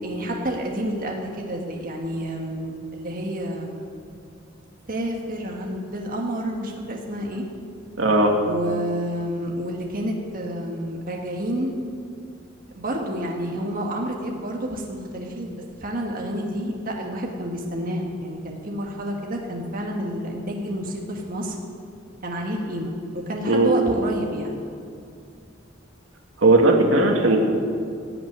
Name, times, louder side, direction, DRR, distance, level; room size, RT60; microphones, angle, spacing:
voice 1, 0.0-3.9 4.9-7.4 8.5-11.7 12.7-15.6 15.8-21.6 22.2-24.6, equal, 45° right, 0 dB, 1.6 m, -29 dB
voice 2, 8.0-8.3 23.5-23.7 26.4-27.4, right 2 dB, 80° right, 1 dB, 1.8 m, -17 dB
17.0 x 5.9 x 9.4 m, 2.4 s
head